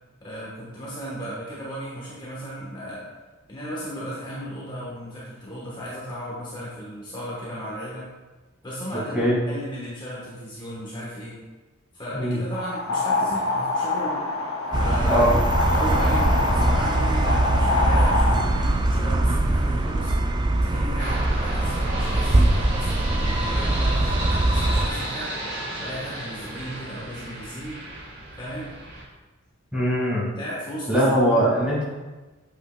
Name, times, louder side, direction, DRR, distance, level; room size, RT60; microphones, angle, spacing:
voice 1, 0.2-3.1 3.5-8.1 8.6-11.4 11.9-14.2 14.7-15.4 15.7-20.1 20.5-25.3 25.8-27.8 28.4-28.7 30.3-31.8, equal, 20° left, -7 dB, 1.1 m, -35 dB
sound 1, 12.5-18.4, left 2 dB, 80° left, 0.7 m, -25 dB
sound 2, 14.7-24.9, right 1 dB, 20° right, 0.3 m, -22 dB
sound 3, 21.0-29.0, right 1 dB, 55° right, 1.9 m, -34 dB
voice 2, 29.7-30.3 30.9-31.8, equal, 5° right, -7 dB, 1.8 m, -21 dB
7.9 x 5.5 x 2.2 m, 1.2 s
head